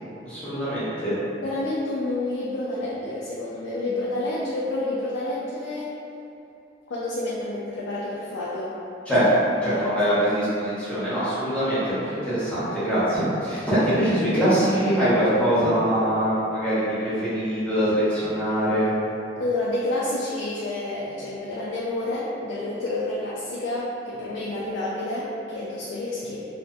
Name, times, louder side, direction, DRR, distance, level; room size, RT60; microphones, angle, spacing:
voice 1, 0.2-1.2 9.1-9.3 9.6-18.9, equal, 5° left, -13 dB, 0.7 m, -23 dB
voice 2, 1.4-5.9 6.9-8.7 9.6-9.8 19.4-26.4, left 2 dB, 85° left, -7 dB, 0.3 m, -29 dB
2.6 x 2.1 x 2.4 m, 2.7 s
head